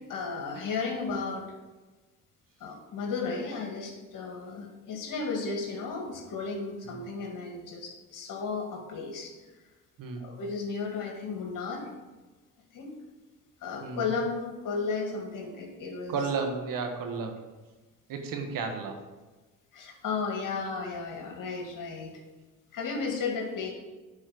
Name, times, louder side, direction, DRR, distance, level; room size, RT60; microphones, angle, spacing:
voice 1, 0.1-1.5 2.6-9.3 10.2-11.9 12.7-13.0 13.6-16.1 19.7-22.2 22.7-23.7, left 4 dB, 70° left, 1 dB, 2.1 m, -34 dB
voice 2, 13.8-14.1 16.1-17.4 18.1-19.1, right 4 dB, 75° right, 5 dB, 1.5 m, -33 dB
9.6 x 4.4 x 6.0 m, 1.2 s
cardioid pair, 80°, 34 cm